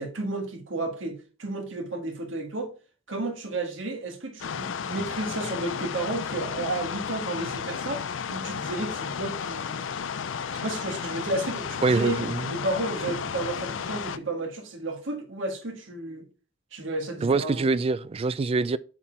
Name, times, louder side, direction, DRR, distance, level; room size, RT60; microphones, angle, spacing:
voice 1, 0.0-2.7 3.1-8.0 8.3-9.9 10.5-12.2 12.5-16.2 16.7-17.6, right 2 dB, 85° right, 1.8 m, -32 dB
sound 1, 4.4-14.2, left 7 dB, 85° left, 0.5 m, -33 dB
voice 2, 11.8-12.5 17.2-18.8, right 3 dB, 30° right, 0.3 m, -24 dB
7.3 x 4.2 x 4.6 m
head